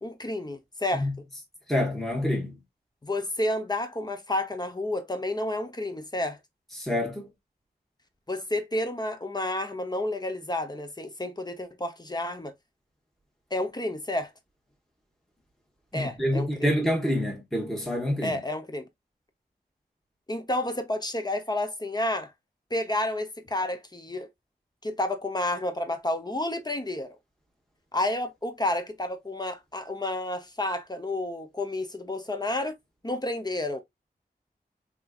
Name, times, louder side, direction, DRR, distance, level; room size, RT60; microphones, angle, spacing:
voice 1, 0.0-1.1 3.0-6.4 8.3-12.5 13.5-14.3 15.9-16.8 18.2-18.9 20.3-22.3 22.7-24.3 24.8-27.1 27.9-32.7 33.0-33.8, left 1 dB, 25° left, 0.9 m, -30 dB
voice 2, 1.7-2.6 6.7-7.3 15.9-18.4, left 1 dB, ahead, 1.4 m, -27 dB
3.8 x 2.9 x 2.4 m
cardioid pair, 45°, 17 cm